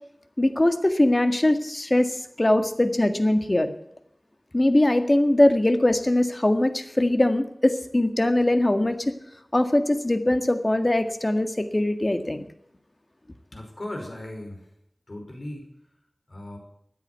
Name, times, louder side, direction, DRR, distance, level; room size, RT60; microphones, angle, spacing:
voice 1, 0.4-3.7 4.5-9.1 9.5-12.5, left 1 dB, 35° left, 8 dB, 1.8 m, -21 dB
voice 2, 13.5-14.7 15.1-15.7 16.3-16.6, left 1 dB, 55° left, 2 dB, 5.2 m, -37 dB
14.0 x 9.8 x 8.1 m, 0.76 s
wide cardioid pair, 50°, 0 cm